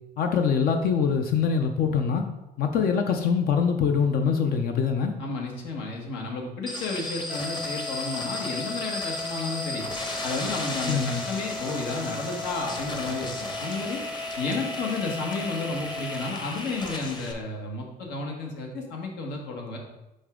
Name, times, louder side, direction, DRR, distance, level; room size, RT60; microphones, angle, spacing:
voice 1, 0.2-2.2 2.6-5.1 10.9-11.2, left 6 dB, 65° left, 5 dB, 0.6 m, -24 dB
voice 2, 5.2-9.9 10.2-14.0 14.4-19.8, left 3 dB, 85° left, 1 dB, 1.4 m, -32 dB
sound 1, 6.7-17.3, left 2 dB, 25° left, 0.9 m, -35 dB
sound 2, 7.3-16.3, left 2 dB, 10° right, 0.3 m, -37 dB
5.3 x 4.8 x 3.7 m, 0.93 s
cardioid pair, 110°, 17 cm